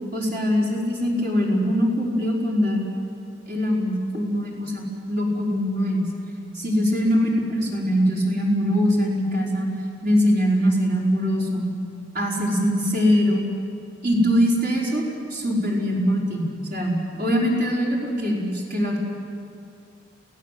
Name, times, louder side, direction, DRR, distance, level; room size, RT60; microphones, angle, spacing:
voice 1, 0.1-2.9 3.5-4.8 5.1-6.1 6.5-9.7 10.0-11.7 12.1-13.4 14.0-15.0 15.3-16.5 16.7-19.0, equal, 50° right, -3 dB, 5.1 m, -22 dB
28.5 x 17.0 x 7.7 m, 2.5 s
head